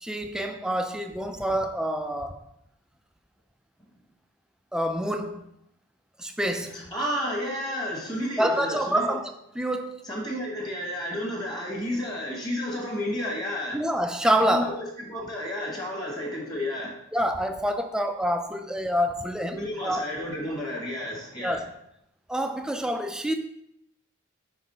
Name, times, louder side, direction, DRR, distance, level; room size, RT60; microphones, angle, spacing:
voice 1, 0.0-2.4 4.7-5.4 6.2-6.9 8.4-10.0 13.7-14.8 17.1-20.0 21.4-21.7 22.3-23.3, equal, 5° right, 0.3 m, -27 dB
voice 2, 6.7-9.1 10.0-13.8 14.5-17.0 19.5-21.6, left 1 dB, 20° left, 1.3 m, -31 dB
6.0 x 3.3 x 5.5 m
head